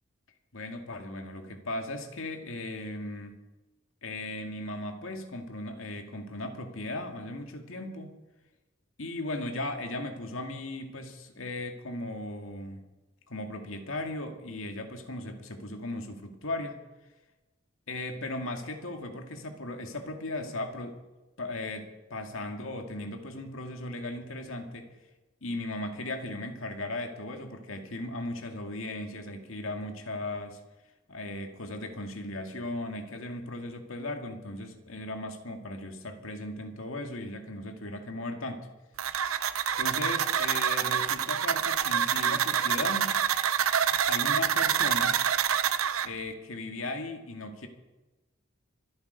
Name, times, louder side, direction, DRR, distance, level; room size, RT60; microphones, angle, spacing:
voice 1, 0.5-3.4 4.0-8.1 9.0-12.8 13.3-16.8 17.9-21.0 21.4-24.9 25.4-30.6 31.1-38.7 39.8-43.2 44.1-45.2 46.0-47.7, left 2 dB, 80° left, 5 dB, 2.0 m, -37 dB
sound 1, 39.0-46.1, right 8 dB, 85° right, 0.7 m, -27 dB
25.5 x 8.8 x 5.2 m, 1.1 s
head